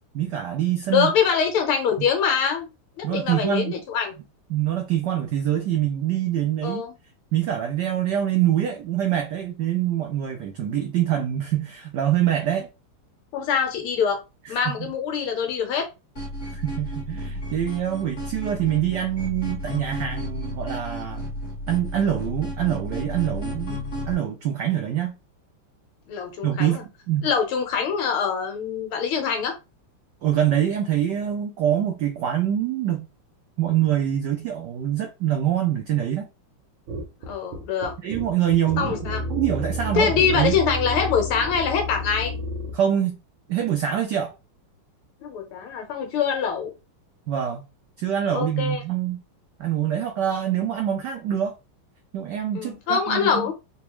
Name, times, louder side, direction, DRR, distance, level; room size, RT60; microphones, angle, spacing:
voice 1, 0.1-1.1 3.0-3.8 4.5-6.8 7.3-12.7 14.4-14.9 16.5-21.3 21.7-25.2 26.4-27.3 30.2-33.1 33.6-36.3 38.0-40.6 42.7-43.2 43.5-44.3 47.3-47.6 48.0-49.2 49.6-51.5 52.1-53.5, right 10 dB, 90° right, 0.9 m, -25 dB
voice 2, 0.9-2.7 3.0-4.1 6.6-6.9 13.3-14.2 14.5-15.9 26.1-26.8 27.2-29.5 37.2-37.9 38.8-39.2 40.0-42.3 45.2-46.7 48.3-48.8 52.6-53.5, left 6 dB, 80° left, 1.8 m, -24 dB
sound 1, 16.2-24.1, equal, 35° left, 1.7 m, -33 dB
sound 2, 36.9-42.8, right 1 dB, 70° right, 1.5 m, -31 dB
4.1 x 2.3 x 3.0 m
omnidirectional pair, 2.4 m